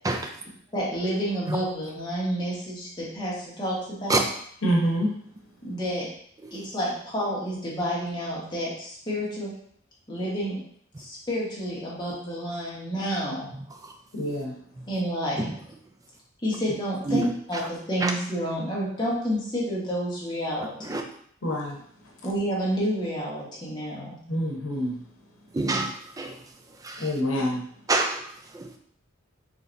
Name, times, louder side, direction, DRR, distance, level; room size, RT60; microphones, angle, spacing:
voice 1, 0.7-4.2 5.6-6.1 6.5-9.5 10.1-10.6 11.0-13.5 14.9-15.5 16.4-21.0 22.2-24.2, equal, 20° left, -6 dB, 1.2 m, -29 dB
voice 2, 4.6-5.1 14.1-14.5 21.4-21.8 24.3-25.0 27.0-27.6, equal, 80° left, -1 dB, 1.0 m, -26 dB
voice 3, 25.5-26.4 26.8-27.1 27.9-28.8, right 2 dB, 15° right, 4 dB, 0.4 m, -27 dB
4.0 x 3.2 x 2.6 m, 0.64 s
head